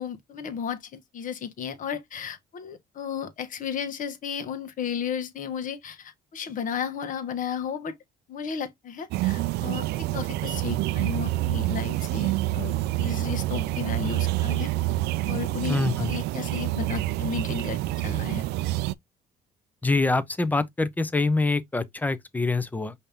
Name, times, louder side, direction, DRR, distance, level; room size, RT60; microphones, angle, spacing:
voice 1, 0.0-7.9 8.3-14.7 15.2-18.4, left 7 dB, 50° left, 1.1 m, -34 dB
sound 1, 9.1-18.9, right 16 dB, 80° right, 0.4 m, -27 dB
voice 2, 15.7-16.1 19.8-22.9, left 3 dB, 10° left, 0.6 m, -25 dB
5.4 x 2.8 x 3.4 m
cardioid pair, 110°, 17 cm